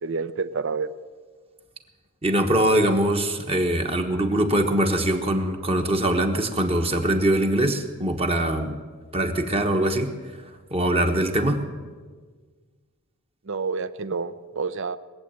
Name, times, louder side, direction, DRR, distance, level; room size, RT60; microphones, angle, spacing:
voice 1, 0.0-0.9 13.4-15.0, right 4 dB, 55° right, 13 dB, 0.6 m, -28 dB
voice 2, 2.2-8.8 9.1-10.1 10.7-11.6, right 1 dB, 25° right, 4 dB, 1.3 m, -22 dB
20.5 x 7.8 x 9.0 m, 1.5 s
head